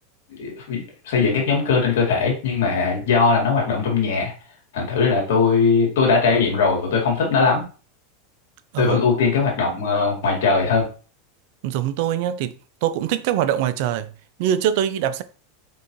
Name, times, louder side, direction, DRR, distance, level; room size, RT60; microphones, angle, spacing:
voice 1, 0.4-4.3 4.7-7.6 8.8-10.9, left 4 dB, 75° left, 2.1 m, -20 dB
voice 2, 11.6-12.5 12.8-14.1 14.4-15.2, right 10 dB, 65° right, 0.4 m, -23 dB
4.1 x 3.7 x 3.0 m
hypercardioid pair, 105°, 0 cm